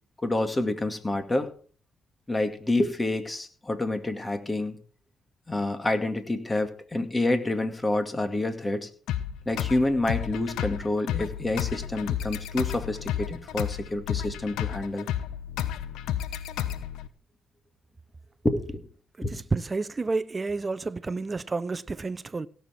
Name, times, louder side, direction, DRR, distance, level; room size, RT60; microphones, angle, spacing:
voice 1, 0.2-1.5 2.3-4.8 5.5-8.9 9.5-15.1 18.4-18.8 19.2-19.3, left 2 dB, 20° left, 2.2 m, -28 dB
sound 1, 9.1-17.1, left 11 dB, 90° left, 0.9 m, -32 dB
voice 2, 19.3-22.5, right 3 dB, 25° right, 0.8 m, -30 dB
17.0 x 7.2 x 5.9 m
cardioid pair, 90°, 0 cm